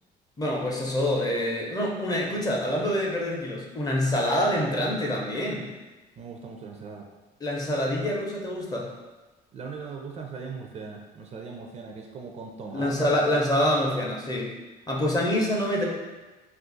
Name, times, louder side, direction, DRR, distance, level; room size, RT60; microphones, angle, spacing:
voice 1, 0.4-5.7 7.4-8.9 12.7-14.5 14.9-15.8, left 1 dB, 20° left, -2 dB, 0.6 m, -26 dB
voice 2, 6.2-7.1 9.5-13.3, right 5 dB, 40° right, 1 dB, 0.4 m, -39 dB
2.4 x 2.4 x 3.8 m, 1.2 s
cardioid pair, 110°, 17 cm